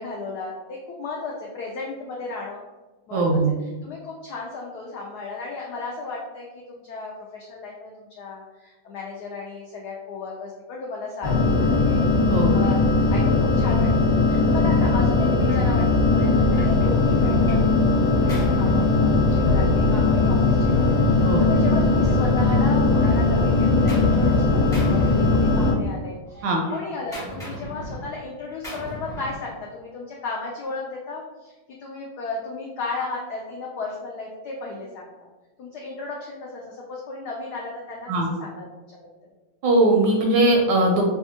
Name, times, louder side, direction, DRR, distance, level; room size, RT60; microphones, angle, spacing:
voice 1, 0.0-2.6 3.1-3.2 3.6-12.0 12.5-12.8 13.1-17.6 18.0-35.1 35.6-38.8, left 3 dB, 80° left, -2 dB, 0.8 m, -34 dB
voice 2, 3.1-3.5 12.3-12.5 21.2-21.4 26.4-26.6 38.1-38.3 39.6-41.0, right 2 dB, 75° right, 0 dB, 1.1 m, -19 dB
sound 1, 11.2-25.7, left 3 dB, 40° left, 1.3 m, -19 dB
Gunshot gunfire, 15.5-15.7 16.2-17.7 18.0-19.7 20.6-22.5 22.8-24.4 24.7-25.9 26.2-29.5, equal, 5° left, 0.4 m, -39 dB
4.2 x 2.3 x 2.7 m, 1.2 s
omnidirectional pair, 2.3 m